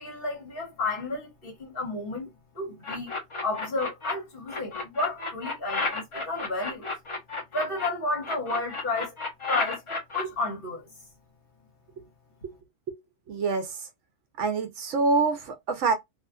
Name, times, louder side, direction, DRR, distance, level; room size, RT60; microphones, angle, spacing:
voice 1, 0.0-2.3 2.5-3.1 3.4-6.9 7.5-9.1 9.5-10.9, left 2 dB, 45° left, 1.3 m, -31 dB
sound 1, 2.8-4.1 4.5-7.9 8.2-10.2, left 3 dB, 30° left, 0.7 m, -32 dB
voice 2, 13.3-13.7 14.4-15.9, right 4 dB, 65° right, 0.9 m, -26 dB
2.7 x 2.4 x 2.2 m
omnidirectional pair, 1.4 m